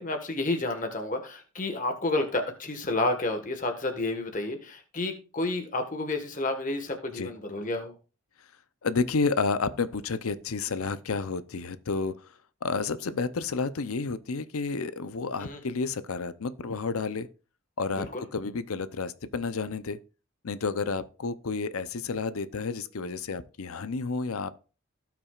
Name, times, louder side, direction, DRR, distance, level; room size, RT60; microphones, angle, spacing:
voice 1, 0.0-7.9 15.4-15.6 17.9-18.2, left 2 dB, 35° left, 1.5 m, -30 dB
voice 2, 8.8-12.2 12.6-17.3 17.8-20.0 20.4-24.5, left 4 dB, 85° left, 0.7 m, -30 dB
16.5 x 6.0 x 2.4 m
head